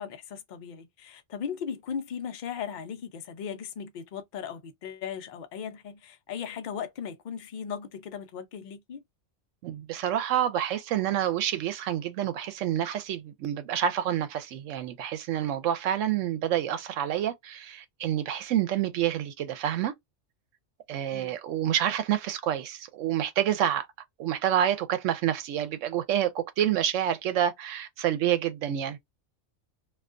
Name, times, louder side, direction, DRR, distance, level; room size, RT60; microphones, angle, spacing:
voice 1, 0.0-9.0 21.1-21.4, left 7 dB, 60° left, 0.5 m, -37 dB
voice 2, 9.6-19.9 20.9-23.9 24.2-29.0, right 10 dB, 90° right, 0.9 m, -28 dB
2.3 x 2.3 x 2.4 m
omnidirectional pair, 1.2 m